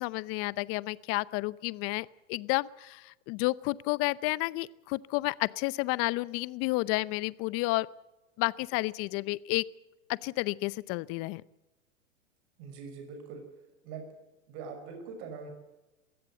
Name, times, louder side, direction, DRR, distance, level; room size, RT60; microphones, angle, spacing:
voice 1, 0.0-7.9 8.4-9.6 10.1-11.4, left 22 dB, 35° left, 20 dB, 0.7 m, -31 dB
voice 2, 12.6-13.4 13.8-14.1 14.5-15.5, right 5 dB, 50° right, 5 dB, 6.1 m, -42 dB
21.5 x 15.5 x 8.0 m, 1.0 s
hypercardioid pair, 115°, 38 cm